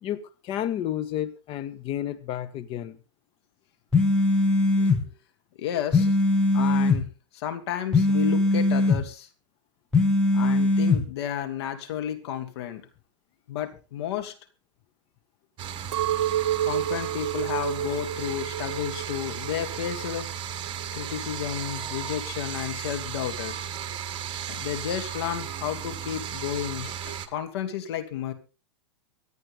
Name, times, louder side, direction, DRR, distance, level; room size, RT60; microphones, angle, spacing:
voice 1, 0.0-3.0, left 11 dB, 40° left, 1.6 m, -31 dB
sound 1, 3.9-5.0 5.9-7.0 7.9-9.0 9.9-11.0, left 2 dB, 5° left, 2.5 m, -21 dB
voice 2, 5.6-6.2 6.5-9.3 10.3-12.8 13.5-14.3 16.6-20.3 20.9-23.6 24.5-28.3, left 10 dB, 60° left, 2.8 m, -32 dB
sound 2, 15.6-27.3, right 9 dB, 35° right, 1.8 m, -35 dB
Chink clink, 15.9-20.2 20.6-21.2, right 12 dB, 55° right, 1.2 m, -30 dB
25.0 x 9.1 x 3.6 m
hypercardioid pair, 110°, 15 cm